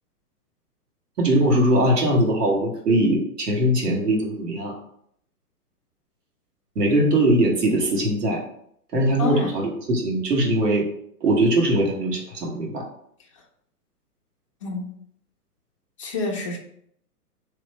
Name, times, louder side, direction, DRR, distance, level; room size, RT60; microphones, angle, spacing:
voice 1, 1.2-4.7 6.7-8.4 8.9-10.9 11.2-12.8, right 1 dB, 80° right, -1 dB, 1.5 m, -21 dB
voice 2, 9.2-9.6 14.6-14.9 16.0-16.6, left 3 dB, 20° left, 0 dB, 0.4 m, -28 dB
3.4 x 3.0 x 4.2 m, 0.69 s
hypercardioid pair, 140°, 47 cm